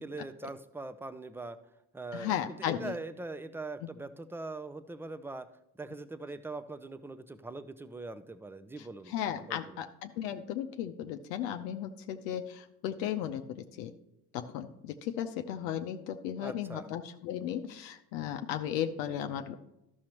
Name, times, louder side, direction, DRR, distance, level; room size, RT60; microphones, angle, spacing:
voice 1, 0.0-1.6 1.9-5.5 5.8-9.8 16.4-16.9, right 2 dB, 5° right, 11 dB, 0.5 m, -42 dB
voice 2, 2.1-2.9 3.8-3.9 8.8-13.9 14.3-19.5, left 10 dB, 75° left, 6 dB, 0.7 m, -35 dB
12.5 x 6.4 x 2.9 m, 0.87 s
hypercardioid pair, 55°, 49 cm